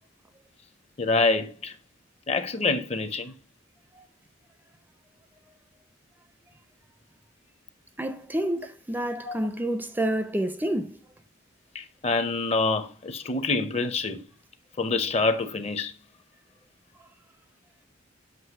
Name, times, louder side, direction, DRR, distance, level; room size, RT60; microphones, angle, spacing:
voice 1, 1.0-1.7 2.3-3.3 9.3-9.4 11.7-14.2 14.8-15.9, left 3 dB, 30° left, 0.6 m, -26 dB
voice 2, 8.0-11.0, right 1 dB, 10° right, 0.5 m, -29 dB
7.7 x 3.0 x 5.9 m
head